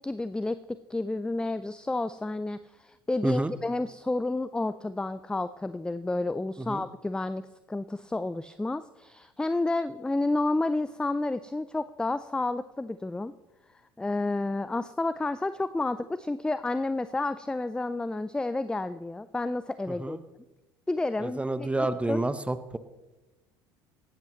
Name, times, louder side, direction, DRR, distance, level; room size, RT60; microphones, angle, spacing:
voice 1, 0.0-13.3 14.0-20.2 20.9-22.2, left 2 dB, 5° left, 14 dB, 0.4 m, -30 dB
voice 2, 3.2-3.5 6.6-6.8 19.9-20.2 21.2-22.8, right 2 dB, 10° right, 12 dB, 1.0 m, -29 dB
18.0 x 14.0 x 3.1 m, 1.1 s
hypercardioid pair, 70°, 12 cm